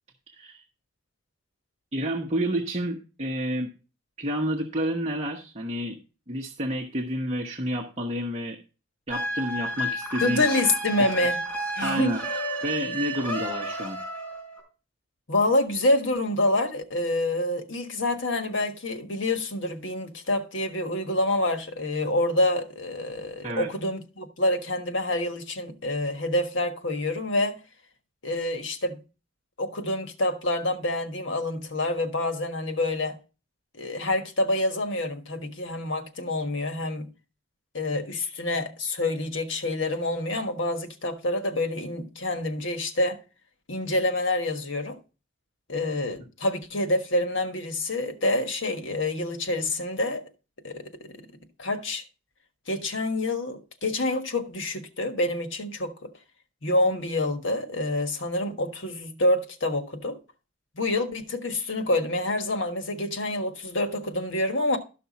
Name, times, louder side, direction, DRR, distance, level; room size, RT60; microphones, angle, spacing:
voice 1, 0.3-0.6 1.9-3.7 4.2-6.0 6.3-8.6 9.1-10.4 11.0-11.1 11.8-12.2 12.6-14.0 23.4-23.7, equal, 35° right, 1.1 m, -29 dB
sound 1, 9.1-14.6, equal, 10° left, 4.3 m, -31 dB
voice 2, 10.2-11.4 11.7-12.2 15.3-27.6 28.2-29.0 29.6-33.2 33.7-37.1 37.7-43.2 43.7-45.0 45.7-50.2 50.6-51.3 51.6-52.0 52.7-56.1 56.6-60.2 60.7-64.8, left 2 dB, 70° left, 1.4 m, -27 dB
13.0 x 5.9 x 4.1 m
head